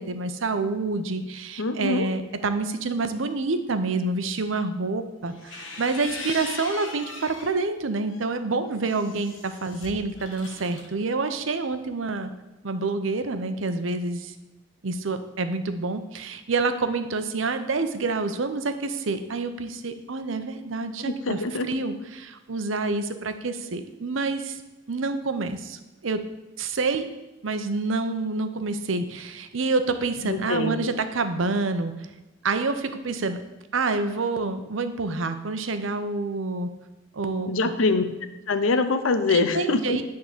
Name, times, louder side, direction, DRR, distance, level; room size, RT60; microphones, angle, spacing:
voice 1, 0.0-12.3 12.6-14.3 14.8-21.4 21.7-24.6 24.9-26.2 26.6-27.1 27.4-31.9 32.4-33.4 33.7-36.7 37.1-37.7 39.3-40.0, right 3 dB, 80° right, 9 dB, 0.7 m, -27 dB
voice 2, 1.6-2.1 21.0-21.7 30.2-31.0 37.5-38.0 38.5-40.0, left 3 dB, 90° left, 9 dB, 0.7 m, -24 dB
sound 1, 5.3-7.6 8.1-10.9, left 3 dB, 70° left, 1.2 m, -40 dB
9.6 x 3.8 x 7.2 m, 1.1 s
head